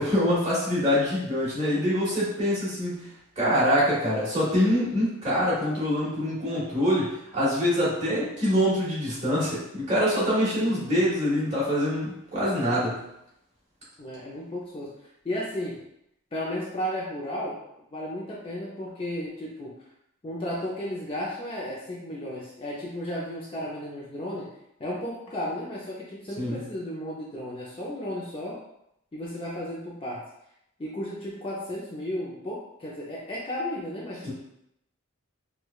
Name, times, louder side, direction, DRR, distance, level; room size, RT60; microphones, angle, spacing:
voice 1, 0.0-3.1 3.3-13.0 26.4-26.6 34.2-34.3, equal, 30° right, -8 dB, 1.5 m, -25 dB
voice 2, 10.6-11.0 14.0-14.9 15.2-15.8 16.3-17.6 17.9-19.7 20.2-24.5 24.8-28.6 29.1-30.3 30.8-34.3, left 1 dB, 25° left, -4 dB, 0.5 m, -34 dB
4.6 x 2.3 x 2.3 m, 0.79 s
head